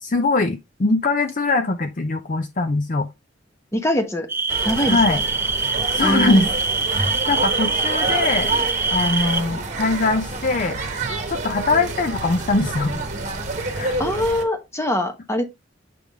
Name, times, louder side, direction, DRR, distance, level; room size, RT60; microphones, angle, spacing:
voice 1, 0.0-3.1 4.9-5.2 5.9-6.5 7.3-8.5 8.9-10.8 11.3-13.0 13.8-14.0, left 3 dB, 45° left, 0.6 m, -21 dB
voice 2, 3.7-4.3 4.6-5.2 6.0-6.5 14.0-15.4, equal, 15° left, 1.0 m, -23 dB
sound 1, 4.3-9.4, right 4 dB, 10° right, 0.3 m, -24 dB
sound 2, 4.5-14.4, right 3 dB, 40° right, 1.2 m, -28 dB
7.6 x 3.6 x 3.5 m
head